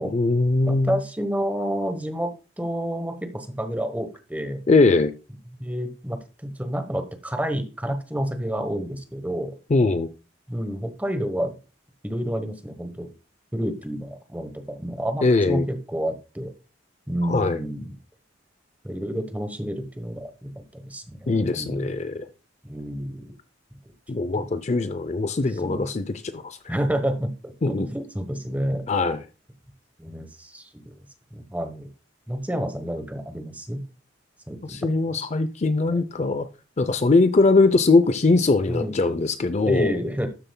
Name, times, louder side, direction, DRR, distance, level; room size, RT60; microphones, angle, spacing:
voice 1, 0.0-1.0 4.7-5.1 9.7-10.1 15.2-15.6 17.2-17.6 21.3-22.3 24.1-26.0 26.3-26.6 27.6-27.9 28.9-29.2 34.7-36.5 36.8-39.9, left 3 dB, 35° left, 0.5 m, -21 dB
voice 2, 0.6-4.6 5.5-9.6 10.5-11.5 12.0-13.1 13.5-16.5 17.1-17.9 18.8-21.9 22.6-23.3 24.3-24.5 25.6-25.9 26.7-28.8 30.0-30.9 31.3-31.9 32.3-33.8 34.5-34.8 35.1-35.3 35.9-36.0 38.7-39.0 39.6-40.3, equal, 10° right, 1.0 m, -29 dB
12.5 x 7.0 x 2.2 m
head